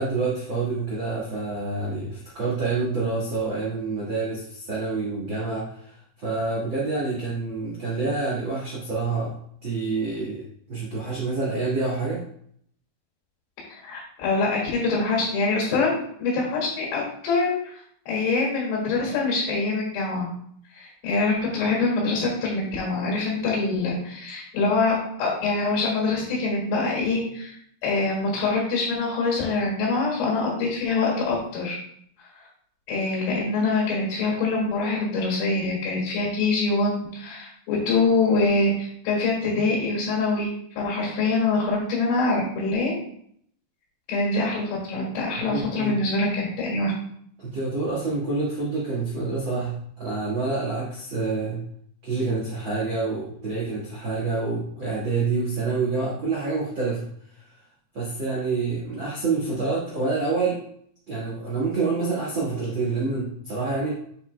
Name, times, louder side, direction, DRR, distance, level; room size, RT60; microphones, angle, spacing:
voice 1, 0.0-5.9 6.2-9.3 9.6-10.4 10.7-12.2 45.4-46.0 47.4-51.6 52.0-57.1 57.9-60.6 61.1-64.0, right 3 dB, 90° right, -6 dB, 1.0 m, -27 dB
voice 2, 13.8-15.9 16.2-17.8 18.1-20.3 20.7-24.9 25.2-27.5 27.8-31.8 32.9-42.9 44.1-46.9, left 3 dB, 85° left, -5 dB, 4.4 m, -24 dB
8.6 x 6.6 x 2.2 m, 0.65 s
omnidirectional pair, 5.2 m